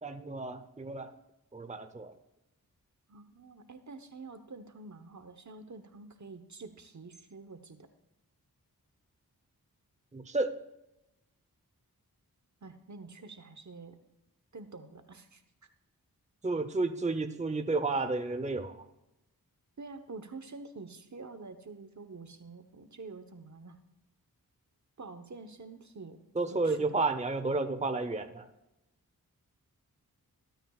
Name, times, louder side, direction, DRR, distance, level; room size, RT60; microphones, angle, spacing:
voice 1, 0.0-1.1 1.5-2.1 10.1-10.5 16.4-18.9 26.4-28.5, right 3 dB, 20° right, 8 dB, 0.8 m, -31 dB
voice 2, 3.1-7.8 12.6-14.0 14.5-15.4 19.8-23.8 25.0-26.2 26.6-26.9, right 3 dB, 50° right, 8 dB, 1.2 m, -47 dB
20.0 x 9.0 x 2.4 m, 0.90 s
cardioid pair, 50°, 37 cm